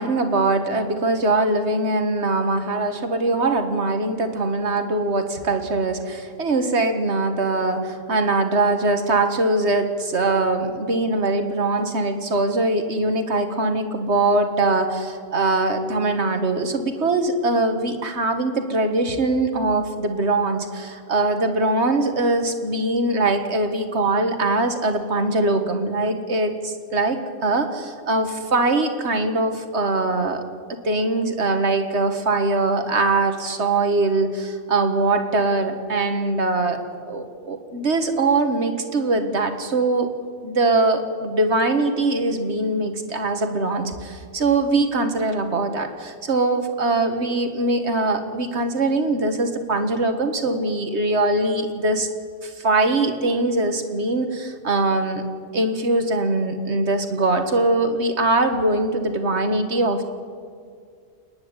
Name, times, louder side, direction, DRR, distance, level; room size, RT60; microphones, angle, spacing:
voice 1, 0.0-30.4 30.8-40.1 40.4-52.1 52.4-55.2 55.5-60.1, right 2 dB, 75° right, 6 dB, 1.8 m, -22 dB
29.0 x 10.0 x 9.6 m, 2.1 s
omnidirectional pair, 1.2 m